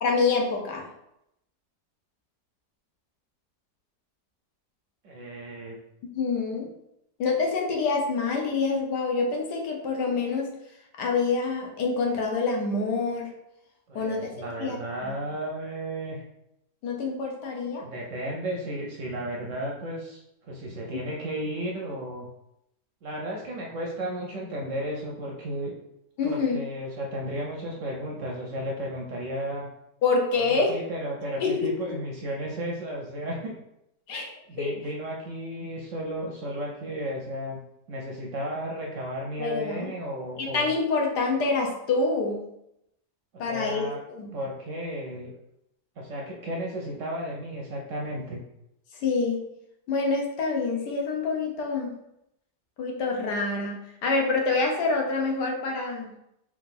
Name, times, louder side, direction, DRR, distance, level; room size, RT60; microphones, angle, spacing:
voice 1, 0.0-0.8 6.0-6.7 7.2-10.5 11.0-13.3 13.9-14.3 14.6-14.8 15.0-15.2 16.8-17.8 26.2-26.6 30.0-30.8 31.4-32.0 34.1-34.3 34.6-34.7 39.4-39.9 40.4-42.4 43.4-43.8 44.1-44.3 49.0-49.4 49.9-52.0 52.8-56.1, left 4 dB, 75° left, 0 dB, 1.4 m, -26 dB
voice 2, 5.0-5.8 13.9-16.2 17.8-22.3 23.0-25.7 26.2-29.7 30.5-33.5 34.5-37.6 37.9-40.7 43.5-44.0 44.3-45.3 46.0-48.4, right 1 dB, 60° right, -1 dB, 0.8 m, -34 dB
3.7 x 2.9 x 3.7 m, 0.81 s
omnidirectional pair, 1.8 m